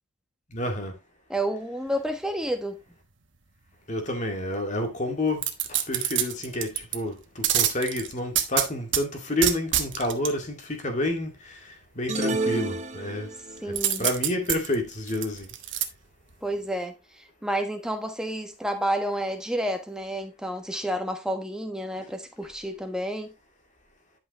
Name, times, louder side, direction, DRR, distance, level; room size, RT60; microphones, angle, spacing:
voice 1, 0.5-0.9 3.9-13.3 13.6-15.5, left 1 dB, 35° left, 2.2 m, -29 dB
voice 2, 1.3-2.8 13.6-14.1 16.4-23.3, right 1 dB, 5° right, 1.2 m, -30 dB
sound 1, 5.4-7.0 7.4-9.0 9.4-10.3 13.8-15.8 16.3-16.4, right 11 dB, 60° right, 1.2 m, -26 dB
sound 2, 12.1-13.6, right 2 dB, 30° right, 0.8 m, -29 dB
11.0 x 5.8 x 3.0 m
head